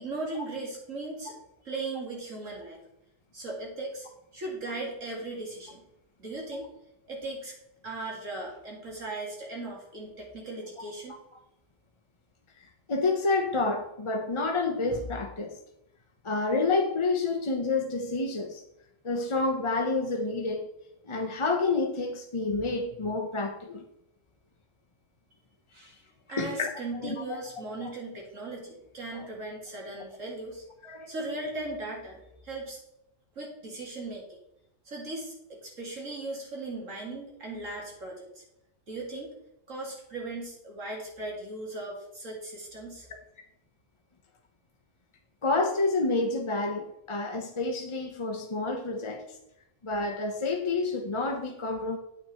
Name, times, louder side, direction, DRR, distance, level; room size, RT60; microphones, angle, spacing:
voice 1, 0.0-1.3 1.6-2.8 3.3-4.1 4.3-5.8 6.2-6.7 7.1-7.6 7.8-11.2 25.7-26.0 26.3-30.6 31.1-32.8 33.4-34.4 34.8-38.4 38.9-39.4 39.7-43.1, right 2 dB, 75° right, -2 dB, 3.2 m, -38 dB
voice 2, 12.9-15.6 16.2-18.6 19.0-20.7 21.1-23.8 26.4-26.7 27.0-27.4 27.8-27.9 29.1-29.3 30.8-31.1 45.4-49.2 49.8-52.0, left 3 dB, 30° left, 3 dB, 0.6 m, -29 dB
9.1 x 8.7 x 4.3 m, 0.83 s
omnidirectional pair, 1.4 m